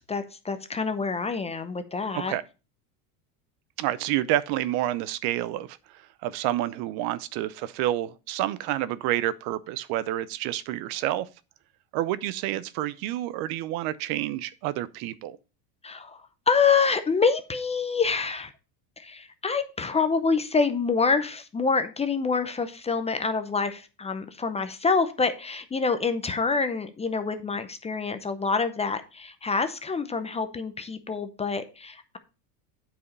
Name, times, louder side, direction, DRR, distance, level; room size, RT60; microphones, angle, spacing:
voice 1, 0.1-2.4 15.8-18.5 19.0-32.2, left 5 dB, 15° left, 0.6 m, -26 dB
voice 2, 3.8-11.3 11.9-15.4, right 14 dB, 60° right, 0.7 m, -29 dB
8.3 x 4.9 x 5.3 m
supercardioid pair, 130°, 44 cm